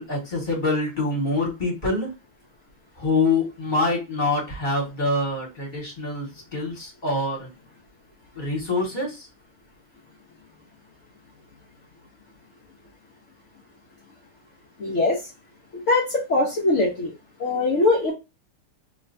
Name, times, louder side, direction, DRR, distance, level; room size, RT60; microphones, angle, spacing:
voice 1, 0.0-2.1 3.0-7.5 8.4-9.3, left 2 dB, 25° left, -3 dB, 1.7 m, -25 dB
voice 2, 14.8-15.2 15.7-17.1 17.4-18.1, left 2 dB, 50° left, -4 dB, 0.9 m, -22 dB
3.3 x 3.1 x 2.6 m, 0.26 s
omnidirectional pair, 2.4 m